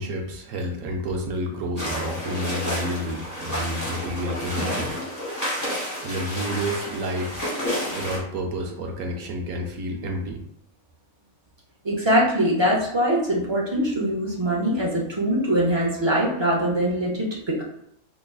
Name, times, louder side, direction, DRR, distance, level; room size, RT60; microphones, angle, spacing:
voice 1, 0.0-5.0 6.0-7.4 7.9-10.4, equal, 70° right, 2 dB, 1.0 m, -30 dB
sound 1, 1.8-8.2, equal, 15° left, 1.0 m, -30 dB
voice 2, 11.8-17.6, equal, 40° right, -3 dB, 0.3 m, -22 dB
3.6 x 3.0 x 2.3 m, 0.72 s
omnidirectional pair, 1.5 m